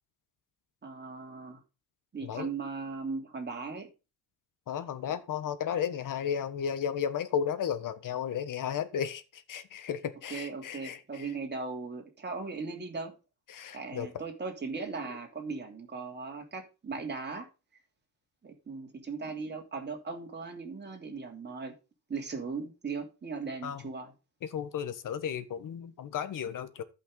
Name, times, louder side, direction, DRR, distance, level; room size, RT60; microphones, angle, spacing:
voice 1, 0.8-1.6 2.1-3.9 10.3-13.1 13.7-17.5 18.4-21.7 22.1-24.1, right 4 dB, 25° right, 3.0 m, -38 dB
voice 2, 4.7-11.3 13.5-14.1 23.6-23.8 24.4-26.8, left 8 dB, 50° left, 1.3 m, -34 dB
13.5 x 5.9 x 3.8 m
cardioid pair, 110°, 40 cm